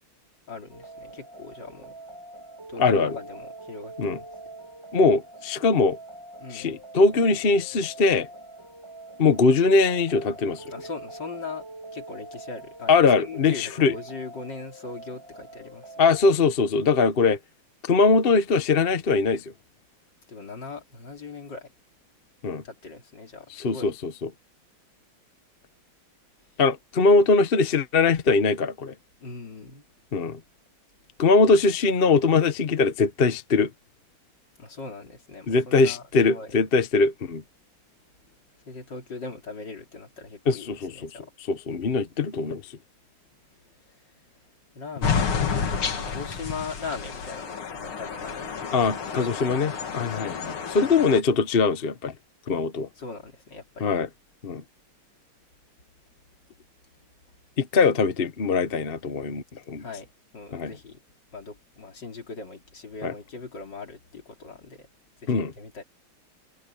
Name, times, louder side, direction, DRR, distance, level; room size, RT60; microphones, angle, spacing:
voice 1, 0.5-2.0 2.7-4.3 6.4-6.8 10.7-11.6 11.9-16.1 20.3-21.7 22.6-24.0 29.2-29.8 34.6-36.6 38.5-41.3 43.9-44.1 44.7-50.4 53.0-54.0 59.8-61.0 61.3-64.9 65.2-65.8, left 4 dB, 55° left, 3.9 m, -40 dB
sound 1, 0.7-16.3, right 2 dB, 15° right, 2.4 m, -44 dB
voice 2, 2.8-3.2 4.0-4.2 4.9-6.0 6.5-8.3 9.2-10.6 12.9-13.9 16.0-17.4 17.8-19.4 22.4-22.6 23.5-24.3 26.6-28.9 30.1-30.4 31.2-33.7 35.5-37.4 40.5-41.1 41.5-42.6 48.7-52.1 52.5-52.9 53.8-54.1 54.4-54.6 57.6-59.8 60.5-60.7 63.0-63.1 65.3-65.5, left 4 dB, 40° left, 0.9 m, -21 dB
sound 2, 45.0-51.2, left 6 dB, 85° left, 2.9 m, -30 dB
omnidirectional pair, 2.3 m